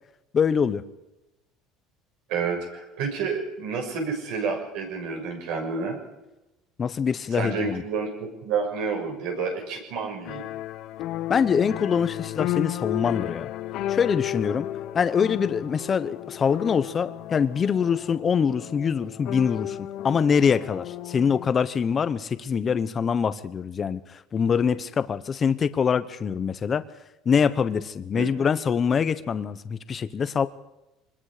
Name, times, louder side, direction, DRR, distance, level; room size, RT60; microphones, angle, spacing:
voice 1, 0.3-0.8 6.8-7.8 11.3-13.5 13.9-14.7 14.9-19.8 20.0-26.8 27.2-30.5, left 6 dB, 25° left, 13 dB, 0.9 m, -24 dB
voice 2, 2.3-6.0 7.3-10.4 28.1-28.3, right 5 dB, 70° right, 2 dB, 6.5 m, -29 dB
sound 1, 10.2-21.5, left 14 dB, 50° left, 0.8 m, -33 dB
25.0 x 21.0 x 5.0 m, 0.99 s
cardioid pair, 155°, 0 cm